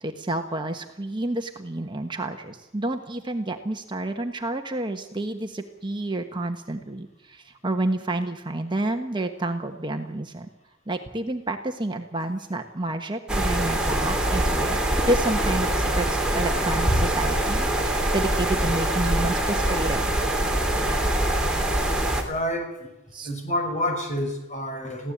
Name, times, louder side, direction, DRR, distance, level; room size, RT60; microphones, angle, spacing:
voice 1, 0.0-10.5 10.9-14.8 15.1-20.0 23.1-23.3, right 1 dB, 25° right, 5 dB, 1.3 m, -29 dB
sound 1, 13.3-22.2, right 1 dB, 5° right, 3.2 m, -24 dB
voice 2, 22.2-22.9 23.2-25.1, left 1 dB, 35° left, 4 dB, 5.8 m, -28 dB
23.0 x 16.0 x 8.6 m, 0.97 s
head